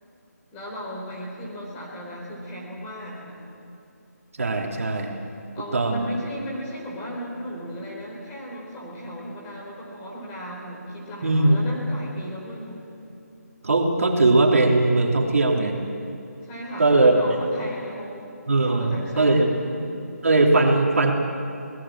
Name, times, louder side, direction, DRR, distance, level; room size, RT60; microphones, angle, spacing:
voice 1, 0.5-3.5 5.5-12.8 16.4-20.0, equal, 15° left, -4 dB, 4.1 m, -36 dB
voice 2, 4.4-5.1 5.7-6.1 11.2-11.6 13.6-15.7 16.8-17.1 18.5-19.5 20.2-21.1, right 2 dB, 55° right, 1 dB, 3.3 m, -19 dB
28.0 x 18.5 x 7.5 m, 2.7 s
figure-of-eight pair, 165°, 9 cm